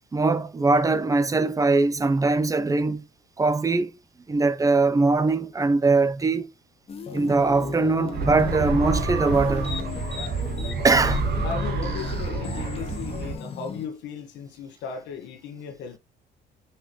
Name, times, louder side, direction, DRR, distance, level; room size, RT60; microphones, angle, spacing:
voice 1, 0.1-3.0 3.4-3.9 4.3-6.5 7.1-9.8 10.8-11.3, right 3 dB, 20° right, 0.8 m, -21 dB
sound 1, 6.9-13.9, left 6 dB, 35° left, 1.4 m, -34 dB
sound 2, 8.1-13.3, right 4 dB, 70° right, 1.8 m, -28 dB
voice 2, 11.4-16.0, left 6 dB, 85° left, 1.5 m, -36 dB
6.2 x 5.7 x 3.1 m
cardioid pair, 125°, 18 cm